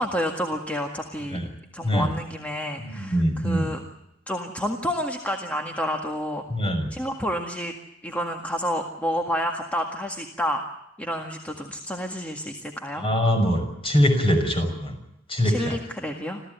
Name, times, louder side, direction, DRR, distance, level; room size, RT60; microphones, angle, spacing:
voice 1, 0.0-1.4 1.7-3.8 4.3-6.4 6.9-7.7 8.0-10.6 11.0-13.1 15.4-16.4, equal, 10° left, 2 dB, 1.8 m, -29 dB
voice 2, 2.8-3.7 6.5-6.9 13.0-15.0 15.3-15.8, equal, 30° left, 5 dB, 6.1 m, -23 dB
27.0 x 15.0 x 9.2 m, 0.84 s
head